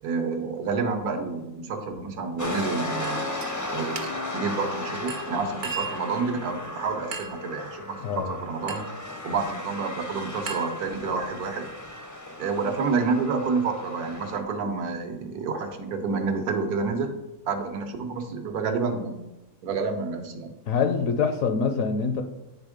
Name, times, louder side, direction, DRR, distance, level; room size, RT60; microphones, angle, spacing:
voice 1, 0.0-3.3 3.7-4.0 4.3-8.9 9.2-11.7 12.4-17.1 17.5-19.1 19.6-20.5, right 4 dB, 80° right, 5 dB, 1.3 m, -29 dB
sound 1, 2.4-14.4, left 1 dB, 25° left, 0.4 m, -35 dB
Chink clink, 3.0-3.5 4.0-4.4 5.1-6.1 7.1-7.5 8.7-9.0 10.5-11.3, right 5 dB, 60° right, 1.1 m, -37 dB
voice 2, 8.0-8.3 20.7-22.2, left 5 dB, 70° left, 7 dB, 0.9 m, -25 dB
9.2 x 3.5 x 5.0 m, 1.0 s
omnidirectional pair, 1.6 m